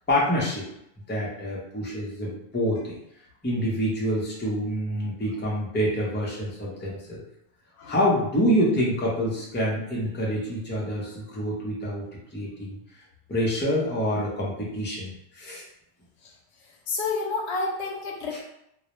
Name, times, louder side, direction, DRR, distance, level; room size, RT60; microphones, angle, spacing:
voice 1, 0.1-0.6 1.1-3.0 3.4-7.2 7.9-12.0 12.3-12.8 13.3-15.6, equal, 15° left, -5 dB, 0.5 m, -26 dB
voice 2, 16.9-18.4, left 3 dB, 80° left, 0 dB, 0.8 m, -29 dB
2.3 x 2.0 x 2.9 m, 0.78 s
omnidirectional pair, 1.1 m